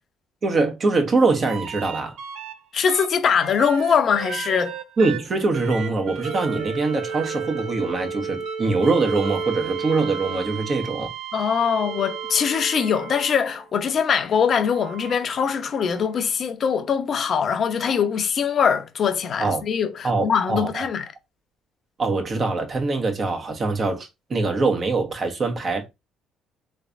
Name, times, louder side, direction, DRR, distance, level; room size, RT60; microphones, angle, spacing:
voice 1, 0.4-2.1 5.0-11.1 19.4-19.6 20.0-20.9 22.0-25.9, right 3 dB, 45° right, 1.2 m, -23 dB
sound 1, 1.5-2.5 2.9-13.7 14.5-16.1 17.8-17.9, right 6 dB, 80° right, 0.5 m, -33 dB
voice 2, 2.7-4.7 11.3-21.1, left 7 dB, 55° left, 0.7 m, -22 dB
3.4 x 3.2 x 2.6 m
supercardioid pair, 65°, 0 cm